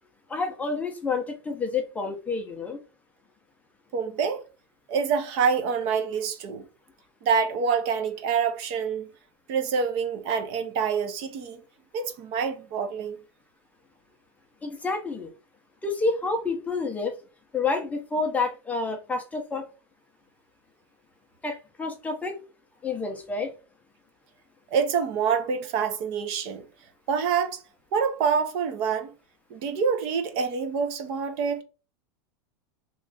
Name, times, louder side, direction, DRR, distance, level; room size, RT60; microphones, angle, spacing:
voice 1, 0.3-2.8 14.6-15.3 15.8-17.2 17.5-19.7 21.4-22.4 22.8-23.5, left 3 dB, 10° left, 0.5 m, -29 dB
voice 2, 3.9-4.4 4.9-6.6 7.2-9.1 9.5-11.6 11.9-13.2 24.7-26.7 27.1-27.6 27.9-29.1 29.5-31.6, right 6 dB, 45° right, 0.6 m, -26 dB
3.0 x 2.4 x 3.8 m
supercardioid pair, 145°, 14 cm